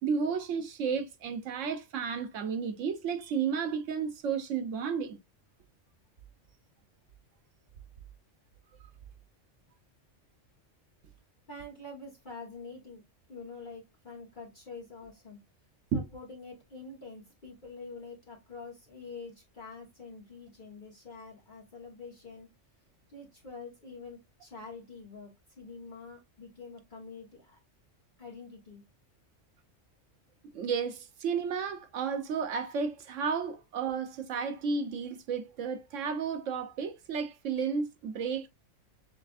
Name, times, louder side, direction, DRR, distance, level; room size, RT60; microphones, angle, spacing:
voice 1, 0.0-5.2 15.9-16.0 30.5-38.5, right 6 dB, 85° right, 1.1 m, -32 dB
voice 2, 11.5-13.0 13.3-15.4 15.9-22.5 23.1-27.6 28.2-28.8, left 3 dB, 40° left, 1.3 m, -46 dB
6.9 x 2.5 x 2.3 m
omnidirectional pair, 1.3 m